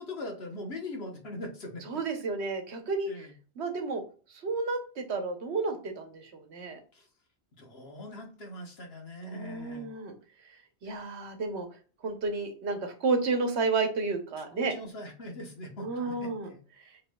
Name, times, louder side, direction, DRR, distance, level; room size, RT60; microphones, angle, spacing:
voice 1, 0.0-1.8 3.1-3.3 6.9-7.1 7.6-9.9 10.8-11.1 14.5-16.6, left 1 dB, 65° left, 2 dB, 1.5 m, -41 dB
voice 2, 1.9-3.3 3.6-4.0 4.3-6.8 9.2-10.1 10.8-11.7 12.0-14.7 15.8-16.5 16.8-17.0, right 3 dB, 80° right, 5 dB, 1.2 m, -31 dB
6.8 x 3.2 x 2.3 m, 0.39 s
omnidirectional pair, 1.1 m